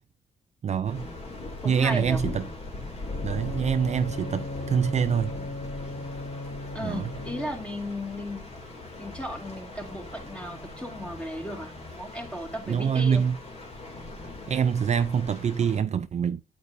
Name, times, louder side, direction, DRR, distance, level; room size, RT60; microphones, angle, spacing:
voice 1, 0.6-1.1 1.6-2.4 3.2-5.4 6.8-7.1 12.7-13.4 14.5-16.4, right 7 dB, 45° right, 0.4 m, -25 dB
sound 1, 0.8-15.8, left 2 dB, 40° left, 2.6 m, -40 dB
voice 2, 1.6-2.2 6.7-8.5 9.0-13.2, equal, 5° left, 2.2 m, -35 dB
Bowed string instrument, 3.0-7.8, left 2 dB, 65° left, 1.6 m, -38 dB
8.5 x 8.4 x 2.6 m
cardioid pair, 110°, 16 cm